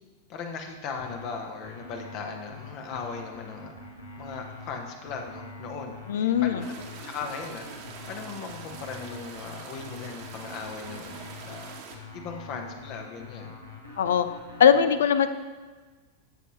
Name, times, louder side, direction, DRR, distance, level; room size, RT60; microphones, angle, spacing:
voice 1, 0.3-3.7 4.2-11.7 12.1-13.6, left 5 dB, 40° left, 3 dB, 1.2 m, -38 dB
sound 1, 1.0-14.7, left 3 dB, 80° left, 1.7 m, -44 dB
voice 2, 6.1-6.6 14.0-14.3 14.6-15.3, left 8 dB, 60° left, 11 dB, 0.6 m, -20 dB
sound 2, 6.6-12.0, right 6 dB, 45° right, 1.4 m, -44 dB
13.0 x 6.9 x 3.2 m, 1.3 s
figure-of-eight pair, 90°, 0 cm